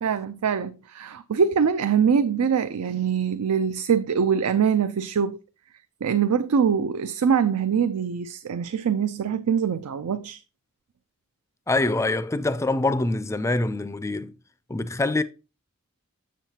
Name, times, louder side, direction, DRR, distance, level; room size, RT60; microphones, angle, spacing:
voice 1, 0.0-5.4 6.0-10.4, right 7 dB, 90° right, 0.4 m, -23 dB
voice 2, 11.7-14.4 14.7-15.2, left 2 dB, 15° left, 0.3 m, -24 dB
7.3 x 7.2 x 2.8 m
head